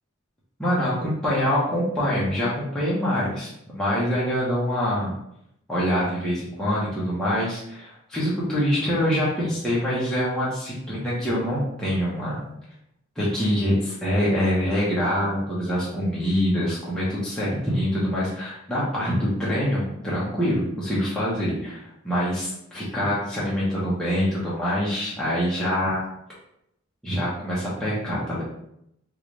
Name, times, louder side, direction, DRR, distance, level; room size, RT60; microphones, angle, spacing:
voice 1, 0.6-5.1 5.7-12.4 13.2-26.0 27.0-28.4, equal, 5° left, -9 dB, 0.8 m, -25 dB
3.2 x 2.5 x 3.1 m, 0.78 s
head